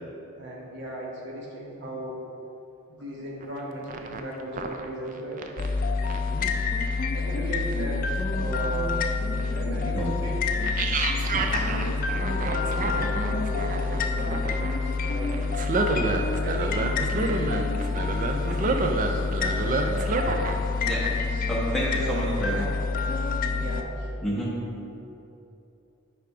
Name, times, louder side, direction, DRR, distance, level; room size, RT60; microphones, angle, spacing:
voice 1, 0.3-2.2 2.9-6.1 7.1-8.0 8.3-10.4 11.2-15.7 16.3-20.0 20.8-21.4 21.9-22.8 23.5-24.2, right 1 dB, 50° right, -3 dB, 1.1 m, -37 dB
sound 1, 3.4-3.6 3.9-5.7 6.1-6.5 6.9-7.0 7.6-7.7 8.4-8.6 9.4-9.5 10.6-20.6 20.9-21.2, right 3 dB, 35° right, 0.3 m, -29 dB
sound 2, 5.6-23.8, left 4 dB, 40° left, 0.3 m, -28 dB
voice 2, 21.5-22.7 24.2-24.6, right 1 dB, ahead, -7 dB, 1.2 m, -29 dB
5.8 x 4.8 x 4.9 m, 2.8 s
head